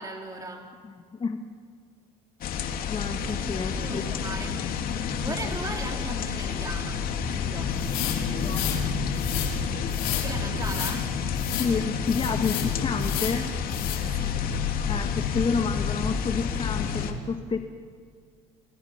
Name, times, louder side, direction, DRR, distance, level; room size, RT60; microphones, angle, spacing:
voice 1, 0.0-0.7 3.4-4.6 5.2-7.0 7.3-7.7 8.4-8.6 10.1-11.0 14.1-14.4, right 2 dB, 20° right, 1 dB, 4.2 m, -37 dB
voice 2, 0.8-1.4 2.9-4.2 5.3-5.5 8.4-8.8 11.6-13.5 14.8-17.7, left 5 dB, 30° left, 6 dB, 2.0 m, -30 dB
sound 1, 2.4-17.1, left 6 dB, 60° left, 3.0 m, -29 dB
sound 2, 7.8-8.8 9.2-9.5 9.9-10.3 10.6-11.0 11.4-11.7 12.1-12.7 13.0-13.4 13.7-14.0, left 12 dB, 80° left, 5.7 m, -32 dB
29.0 x 28.5 x 6.0 m, 2.1 s
supercardioid pair, 90°, 17 cm